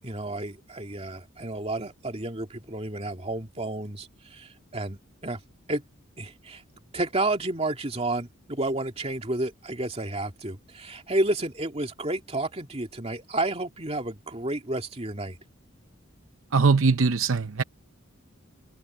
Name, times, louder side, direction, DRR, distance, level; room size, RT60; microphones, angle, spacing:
voice 1, 0.0-5.4 5.7-5.8 6.2-6.6 6.9-15.4, right 2 dB, 30° right, 2.6 m, -31 dB
voice 2, 16.5-17.6, right 4 dB, 75° right, 0.7 m, -21 dB
head